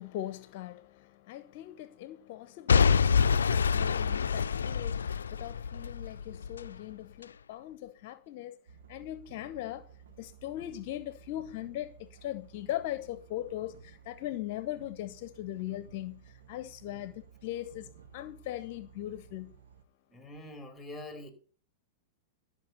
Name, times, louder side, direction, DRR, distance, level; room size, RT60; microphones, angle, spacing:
voice 1, 0.0-8.6 8.9-9.9 10.2-19.5, left 13 dB, 55° left, 0.7 m, -40 dB
Boom / Shatter / Crushing, 2.7-6.7 7.2-7.3, left 6 dB, 85° left, 0.4 m, -26 dB
sound 1, 8.7-19.8, right 7 dB, 75° right, 1.2 m, -55 dB
voice 2, 20.1-21.3, left 1 dB, 5° left, 3.3 m, -44 dB
13.0 x 5.9 x 6.8 m
hypercardioid pair, 105°, 0 cm